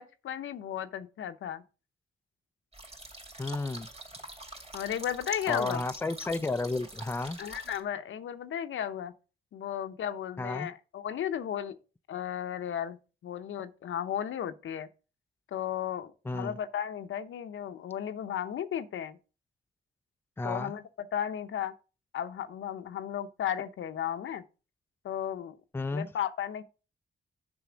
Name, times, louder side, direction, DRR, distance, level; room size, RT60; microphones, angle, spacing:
voice 1, 0.0-1.6 4.7-5.8 7.4-9.1 9.5-11.8 12.1-14.9 15.5-19.2 20.4-20.8 21.1-21.7 22.1-24.4 25.0-25.6 25.9-26.6, left 9 dB, 85° left, 0.8 m, -34 dB
sound 1, 2.7-7.8, right 2 dB, 30° right, 2.5 m, -45 dB
voice 2, 3.4-3.9 5.5-7.4 10.4-10.7 16.3-16.6 20.4-20.7 25.7-26.1, left 3 dB, 10° left, 0.4 m, -32 dB
7.0 x 5.3 x 5.0 m
cardioid pair, 80°, 20 cm